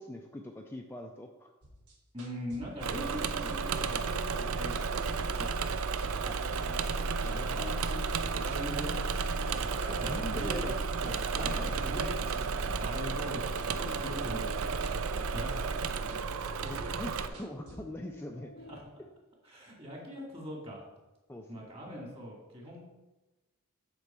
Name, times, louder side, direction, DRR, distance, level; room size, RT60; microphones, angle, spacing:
voice 1, 0.0-1.5 6.2-6.4 9.7-10.7 16.6-18.5 19.0-19.1 21.3-21.8, left 1 dB, 10° left, 2 dB, 0.4 m, -42 dB
sound 1, 1.6-5.7 6.0-7.9 8.2-9.5 9.8-13.3 13.6-15.5 15.8-17.8, equal, 85° right, 1.6 m, -51 dB
voice 2, 2.1-4.8 5.3-5.7 7.2-7.8 8.2-8.9 9.5-10.7 11.0-16.3 16.6-17.0 19.5-20.8 21.5-22.8, equal, 25° right, -2 dB, 2.2 m, -42 dB
Engine / Mechanisms, 2.8-17.3, right 5 dB, 65° right, 0.5 m, -33 dB
sound 2, 3.6-18.8, left 2 dB, 65° left, 0.7 m, -49 dB
8.0 x 6.0 x 4.3 m, 1.1 s
head